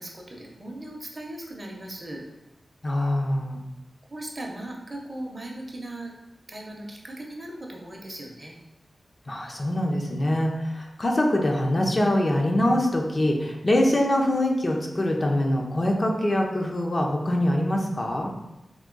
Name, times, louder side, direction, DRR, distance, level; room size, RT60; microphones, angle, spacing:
voice 1, 0.0-2.2 4.1-6.1 6.5-8.6, right 1 dB, 30° right, 0 dB, 0.6 m, -38 dB
voice 2, 2.8-3.6 9.3-18.3, left 1 dB, 35° left, 0 dB, 0.5 m, -24 dB
3.7 x 2.7 x 3.8 m, 0.93 s
wide cardioid pair, 120°, 0 cm